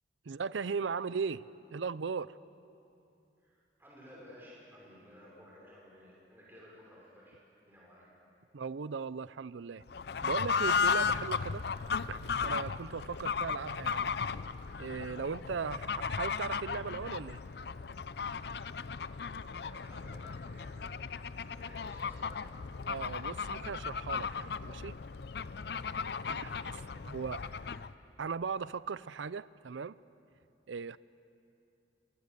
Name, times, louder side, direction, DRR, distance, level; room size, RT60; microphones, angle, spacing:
voice 1, 0.3-1.4 1.7-2.4 8.5-9.8 10.2-11.7 12.1-14.1 14.8-17.4 22.9-25.0 26.3-26.5 27.1-27.4 28.2-29.9 30.7-31.0, right 5 dB, 85° right, 18 dB, 0.5 m, -38 dB
voice 2, 3.4-8.1 19.5-22.4 26.2-27.7, equal, 10° right, -5 dB, 5.6 m, -56 dB
Fowl / Bird, 9.9-27.9, left 6 dB, 60° left, 0.5 m, -35 dB
28.0 x 23.0 x 6.7 m, 2.8 s
head